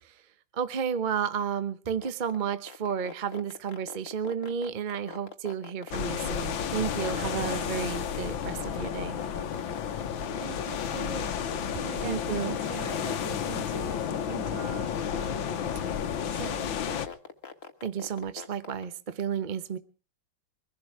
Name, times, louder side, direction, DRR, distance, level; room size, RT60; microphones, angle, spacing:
voice 1, 0.5-9.2 12.0-12.6 17.8-19.8, right 7 dB, 40° right, 12 dB, 0.7 m, -32 dB
sound 1, 1.9-18.8, left 6 dB, 40° left, 1.7 m, -42 dB
sound 2, 5.9-17.1, left 8 dB, 75° left, 1.8 m, -32 dB
voice 2, 10.4-11.4 11.7-15.7 16.0-16.7, right 8 dB, 65° right, 10 dB, 2.2 m, -43 dB
23.5 x 11.5 x 4.7 m, 0.37 s
omnidirectional pair, 2.3 m